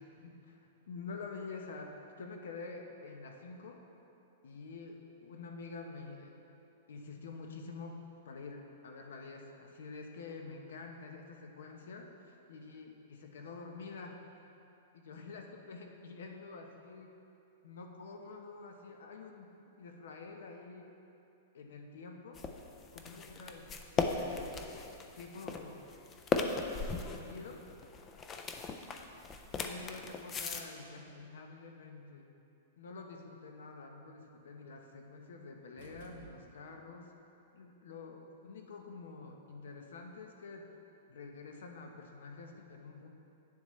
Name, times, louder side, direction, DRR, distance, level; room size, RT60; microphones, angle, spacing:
voice 1, 0.0-3.8 4.4-6.3 6.9-14.2 14.9-17.1 17.6-20.9 21.5-22.5 22.9-23.7 24.0-24.6 25.2-25.8 26.8-27.7 29.5-32.3 32.8-37.1 37.5-40.7 41.1-43.1, left 4 dB, 80° left, 3 dB, 0.9 m, -48 dB
sound 1, 22.3-30.6, left 4 dB, 15° left, 0.3 m, -37 dB
sound 2, 35.8-37.0, right 4 dB, 45° right, 0.7 m, -56 dB
9.1 x 7.1 x 3.2 m, 2.8 s
supercardioid pair, 175°, 0 cm